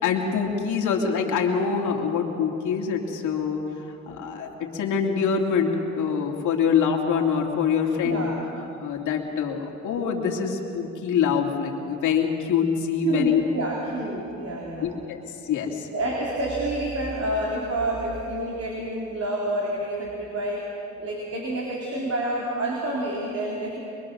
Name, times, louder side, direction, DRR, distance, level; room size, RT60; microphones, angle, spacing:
voice 1, 0.0-3.6 4.1-8.3 8.8-13.4 14.8-15.2 15.5-15.9, left 6 dB, 80° left, 1 dB, 2.6 m, -25 dB
voice 2, 8.0-8.4 13.0-14.9 15.9-20.6 21.0-23.8, right 1 dB, 55° right, -3 dB, 3.9 m, -28 dB
24.5 x 22.0 x 6.3 m, 2.9 s
cardioid pair, 90°, 30 cm